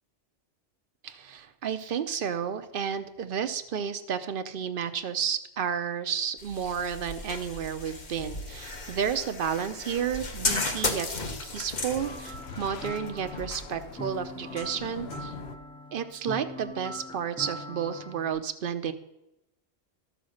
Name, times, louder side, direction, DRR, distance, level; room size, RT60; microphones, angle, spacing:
voice 1, 1.0-11.1 11.4-15.3 15.9-18.9, right 7 dB, 60° right, 11 dB, 0.9 m, -31 dB
sound 1, 6.4-14.3, left 3 dB, 45° left, 1.2 m, -35 dB
sound 2, 8.2-15.6, left 6 dB, 75° left, 1.1 m, -45 dB
sound 3, 12.0-18.4, equal, 5° left, 0.5 m, -42 dB
13.5 x 5.1 x 6.4 m, 0.93 s
omnidirectional pair, 1.1 m